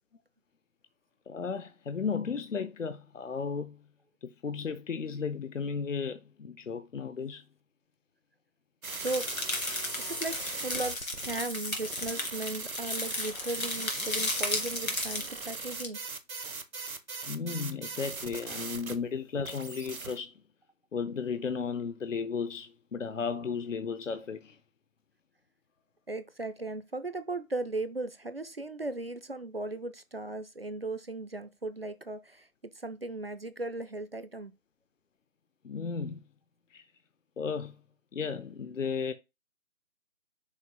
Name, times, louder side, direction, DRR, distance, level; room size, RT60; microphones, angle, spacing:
voice 1, 1.3-3.8 4.2-7.4 9.9-10.3 17.3-20.3 20.9-24.6 35.6-36.2 36.7-36.9 37.4-37.8 38.1-39.1, left 5 dB, 65° left, 0.7 m, -34 dB
sound 1, 8.8-19.0 19.4-20.2, right 4 dB, 80° right, 1.1 m, -40 dB
sound 2, 8.9-15.9, left 2 dB, 80° left, 2.7 m, -35 dB
voice 2, 9.0-9.3 10.0-16.0 26.1-32.5 32.7-34.5, right 2 dB, 45° right, 0.5 m, -37 dB
6.5 x 2.7 x 5.4 m
figure-of-eight pair, 160°, 42 cm